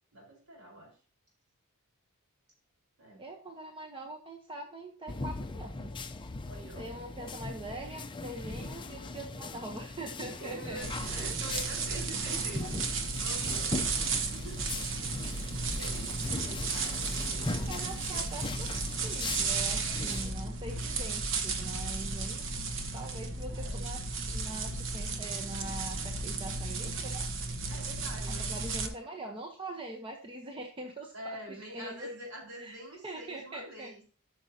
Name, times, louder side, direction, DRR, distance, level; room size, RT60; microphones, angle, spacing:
voice 1, 0.1-1.0 3.0-3.3 6.4-6.9 10.4-12.8 13.1-17.6 23.5-23.8 27.7-29.4 31.1-34.0, right 1 dB, 75° right, 0 dB, 4.3 m, -46 dB
voice 2, 3.2-5.9 6.8-11.3 17.5-18.7 19.0-27.3 28.3-32.1 32.6-32.8 33.0-33.9, right 2 dB, 25° right, 1 dB, 0.9 m, -43 dB
sound 1, 5.1-20.3, left 3 dB, 20° left, 0.6 m, -39 dB
sound 2, 10.8-28.9, right 4 dB, 60° right, 1.1 m, -34 dB
13.5 x 6.3 x 2.8 m, 0.38 s
head